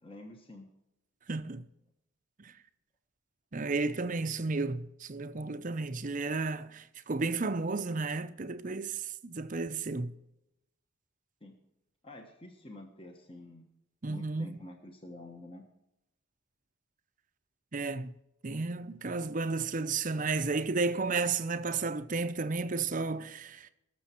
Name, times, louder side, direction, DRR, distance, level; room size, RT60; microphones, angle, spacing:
voice 1, 0.0-0.7 11.4-11.5 12.0-13.7 14.1-15.6, left 1 dB, 25° left, 1.2 m, -48 dB
voice 2, 1.3-1.6 2.4-2.5 3.5-10.1 14.0-14.6 17.7-18.1 18.4-23.7, right 3 dB, 40° right, 0.6 m, -33 dB
19.0 x 6.9 x 4.4 m
head